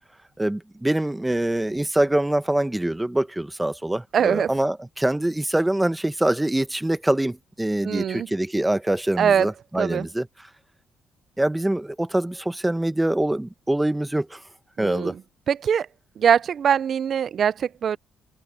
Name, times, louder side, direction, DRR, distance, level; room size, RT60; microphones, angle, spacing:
voice 1, 0.4-10.5 11.4-14.4 14.8-15.1, right 1 dB, 10° right, 1.2 m, -24 dB
voice 2, 4.1-4.5 7.8-8.3 9.2-9.5 9.8-10.1 14.8-15.1 15.5-15.9 16.2-18.0, right 8 dB, 55° right, 0.5 m, -22 dB
cardioid pair, 90°, 0 cm